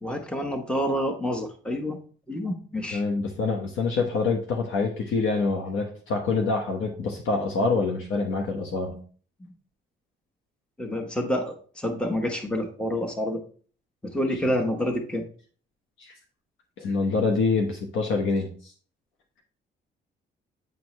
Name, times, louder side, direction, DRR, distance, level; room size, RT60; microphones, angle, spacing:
voice 1, 0.0-2.0 2.3-3.0 10.8-13.4 14.0-15.2, equal, 5° left, 3 dB, 1.1 m, -28 dB
voice 2, 2.9-9.0 16.0-16.1 16.8-18.7, left 4 dB, 80° left, 2 dB, 1.1 m, -26 dB
9.3 x 4.6 x 3.2 m, 0.43 s
cardioid pair, 90°, 20 cm